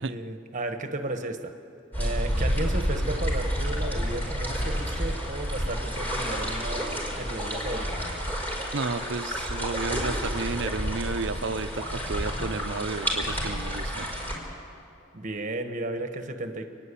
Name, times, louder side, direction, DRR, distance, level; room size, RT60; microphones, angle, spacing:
voice 1, 0.0-1.6 2.0-8.0 15.1-16.7, right 2 dB, 40° right, 7 dB, 1.3 m, -34 dB
sound 1, 1.9-14.4, equal, 10° left, 5.1 m, -30 dB
voice 2, 8.7-14.1, right 4 dB, 65° right, 11 dB, 0.7 m, -32 dB
29.0 x 10.5 x 8.4 m, 2.6 s
head